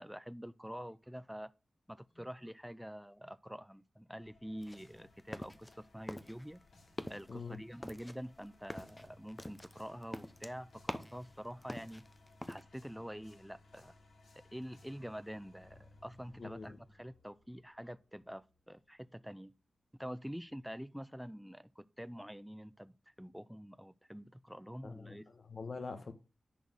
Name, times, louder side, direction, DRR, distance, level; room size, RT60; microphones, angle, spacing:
voice 1, 0.0-1.5 1.9-6.6 7.1-12.1 12.5-14.0 14.5-19.5 20.0-25.3, equal, ahead, 0.4 m, -46 dB
sound 1, 4.2-18.9, left 2 dB, 85° left, 2.6 m, -63 dB
sound 2, 4.6-5.8 6.1-6.6 6.9-7.3 7.8-11.3 11.6-12.6, left 1 dB, 15° left, 0.7 m, -45 dB
voice 2, 7.3-7.6 16.4-16.8 24.8-26.1, left 4 dB, 60° left, 1.2 m, -44 dB
10.5 x 4.2 x 6.5 m
wide cardioid pair, 100°, 0 cm